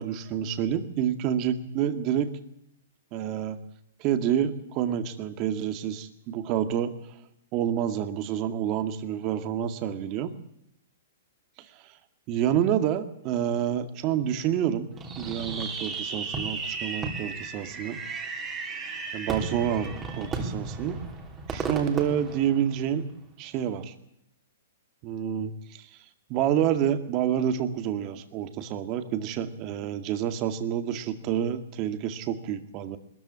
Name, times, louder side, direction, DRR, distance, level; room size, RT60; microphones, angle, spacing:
voice 1, 0.0-2.3 3.1-3.6 4.0-6.9 7.5-10.3 12.3-14.9 15.2-18.0 19.1-21.0 21.5-23.0 23.4-23.9 25.0-25.9 26.3-33.0, right 9 dB, 30° right, 9 dB, 2.1 m, -28 dB
Fireworks, 15.0-23.1, right 4 dB, 15° right, 3.1 m, -34 dB
21.0 x 14.0 x 9.7 m, 0.77 s
hypercardioid pair, 155°, 0 cm